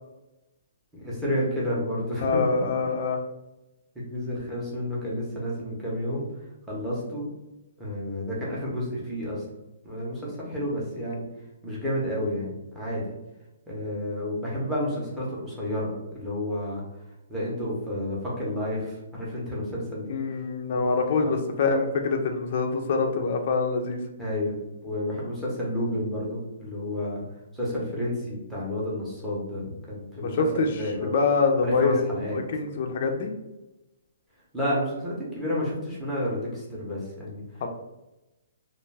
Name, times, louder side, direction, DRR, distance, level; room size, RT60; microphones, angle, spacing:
voice 1, 0.9-2.9 3.9-6.2 6.7-7.3 7.8-9.5 9.8-11.3 11.6-13.0 13.7-16.8 17.3-20.2 20.7-20.9 21.2-21.3 24.2-27.2 27.5-31.1 31.6-32.4 34.5-37.4, left 1 dB, 5° right, -6 dB, 0.6 m, -30 dB
voice 2, 2.2-3.2 20.1-24.0 30.2-30.7 31.0-33.3 37.6-37.7, left 4 dB, 35° left, 3 dB, 0.3 m, -25 dB
2.3 x 2.2 x 3.2 m, 0.98 s
hypercardioid pair, 175°, 0 cm